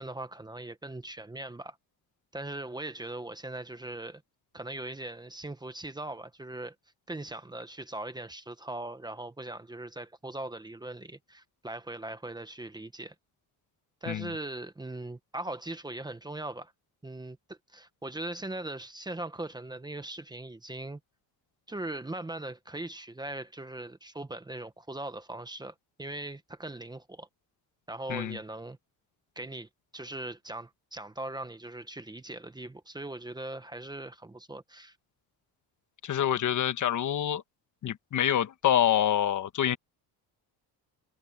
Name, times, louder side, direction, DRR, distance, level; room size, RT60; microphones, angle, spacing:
voice 1, 0.0-1.8 2.3-4.2 4.5-6.7 7.1-13.1 14.0-16.7 17.0-21.0 21.7-27.3 27.9-28.8 29.4-35.0, right 2 dB, 10° right, 1.1 m, -40 dB
voice 2, 36.0-37.4 37.8-39.8, left 10 dB, 50° left, 1.4 m, -26 dB
cardioid pair, 135°, 40 cm